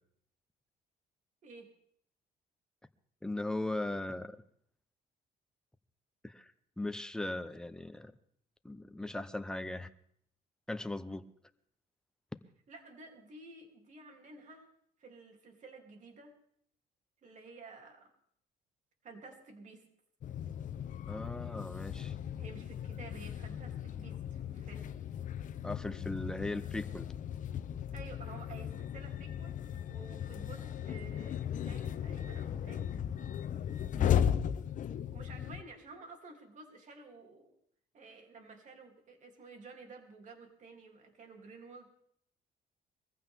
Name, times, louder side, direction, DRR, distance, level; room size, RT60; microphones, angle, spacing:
voice 1, 3.2-4.4 6.2-6.5 6.8-8.1 8.6-9.9 10.7-11.3 21.1-22.1 25.6-27.1 33.9-34.3, left 2 dB, 5° left, 10 dB, 0.8 m, -38 dB
voice 2, 12.7-14.7 15.0-16.3 17.2-18.1 19.0-19.9 22.4-24.9 27.9-29.6 29.9-33.0 35.1-37.5 37.9-41.9, right 3 dB, 45° right, 3 dB, 3.1 m, -52 dB
sound 1, 20.2-35.6, left 9 dB, 50° left, 0.9 m, -36 dB
22.0 x 15.0 x 3.6 m, 0.67 s
cardioid pair, 110°, 17 cm